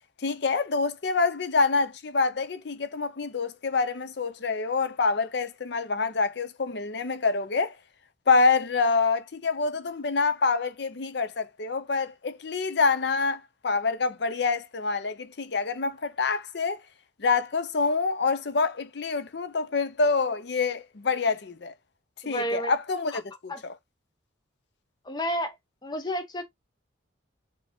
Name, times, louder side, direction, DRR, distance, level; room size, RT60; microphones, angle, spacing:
voice 1, 0.2-7.7 8.3-16.8 17.2-21.7 22.3-23.7, left 4 dB, 55° left, 0.6 m, -26 dB
voice 2, 22.2-22.7 23.1-23.2 23.5-23.6 25.1-25.5 25.8-26.4, equal, 20° left, 0.7 m, -30 dB
4.7 x 2.9 x 3.6 m
head